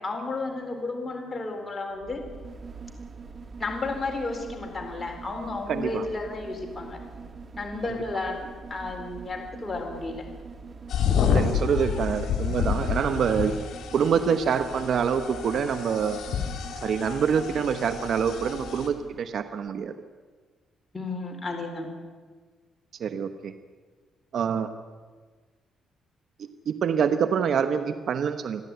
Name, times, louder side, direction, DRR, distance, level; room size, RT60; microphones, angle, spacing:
voice 1, 0.0-2.3 3.6-7.0 7.5-10.3 20.9-21.9, left 3 dB, 25° left, 3 dB, 4.0 m, -32 dB
sound 1, 1.9-19.3 19.7-19.8, right 4 dB, 40° right, 1.5 m, -43 dB
voice 2, 5.7-6.1 11.3-13.6 13.9-16.2 16.8-19.9 23.0-23.5 24.3-24.7 26.4-28.6, right 7 dB, 60° right, 10 dB, 1.1 m, -26 dB
sound 2, 10.9-18.9, left 7 dB, 65° left, 3.2 m, -29 dB
29.0 x 11.0 x 9.4 m, 1.5 s
cardioid pair, 90°, 0 cm